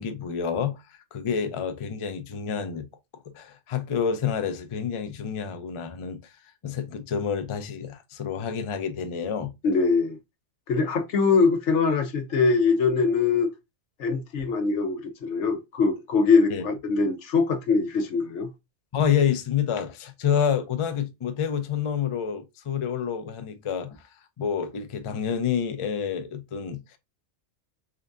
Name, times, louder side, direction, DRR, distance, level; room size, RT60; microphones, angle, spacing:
voice 1, 0.0-2.9 3.3-6.3 6.6-9.5 16.5-16.6 18.9-24.0 24.4-26.8, left 7 dB, 45° left, 0.4 m, -28 dB
voice 2, 9.6-10.2 10.7-13.5 14.0-18.5, left 4 dB, 80° left, 1.0 m, -23 dB
3.8 x 3.4 x 2.5 m
omnidirectional pair, 1.2 m